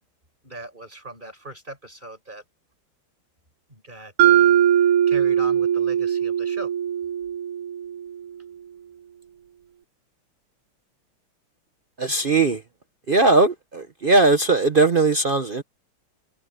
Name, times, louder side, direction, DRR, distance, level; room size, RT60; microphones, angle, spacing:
voice 1, 0.4-2.4 3.7-6.7, right 2 dB, 20° right, 5.5 m, -40 dB
Mallet percussion, 4.2-8.2, right 10 dB, 85° right, 1.9 m, -20 dB
voice 2, 12.0-12.6 13.1-15.6, right 3 dB, 65° right, 0.5 m, -19 dB
omnidirectional pair, 2.4 m